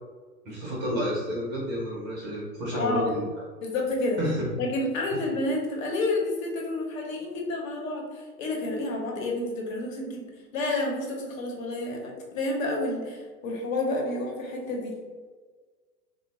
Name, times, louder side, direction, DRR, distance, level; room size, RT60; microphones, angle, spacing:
voice 1, 0.4-3.3 4.2-4.5, equal, 20° right, -4 dB, 0.6 m, -30 dB
voice 2, 2.7-3.0 3.6-4.2 4.6-10.2 10.5-15.0, left 2 dB, 55° left, 0 dB, 1.0 m, -29 dB
3.6 x 2.2 x 3.0 m, 1.4 s
figure-of-eight pair, 105°, 49 cm